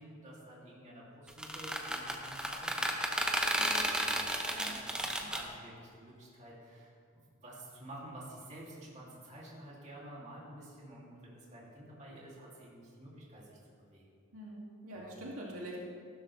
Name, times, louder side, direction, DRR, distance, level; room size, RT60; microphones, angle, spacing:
voice 1, 0.0-14.0 14.9-15.1, right 1 dB, 35° right, -5 dB, 2.6 m, -51 dB
sound 1, 1.3-5.4, right 1 dB, 5° right, 0.8 m, -33 dB
voice 2, 3.6-3.9 4.4-4.8 14.3-15.8, right 1 dB, 75° right, -4 dB, 2.3 m, -45 dB
14.5 x 12.5 x 3.2 m, 2.3 s
head